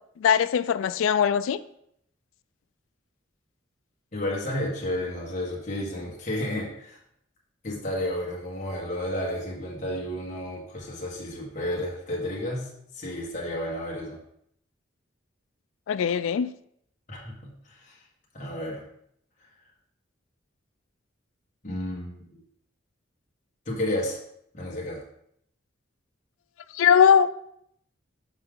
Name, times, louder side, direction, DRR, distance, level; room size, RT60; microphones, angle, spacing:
voice 1, 0.2-1.6 15.9-16.5 26.8-27.3, left 7 dB, 85° left, 0.3 m, -20 dB
voice 2, 4.1-7.0 7.6-12.7 12.9-14.2 17.1-18.0 18.3-18.8 21.6-22.4 23.6-24.2 24.5-25.0, left 1 dB, 35° left, 1.4 m, -32 dB
6.4 x 4.8 x 3.8 m
head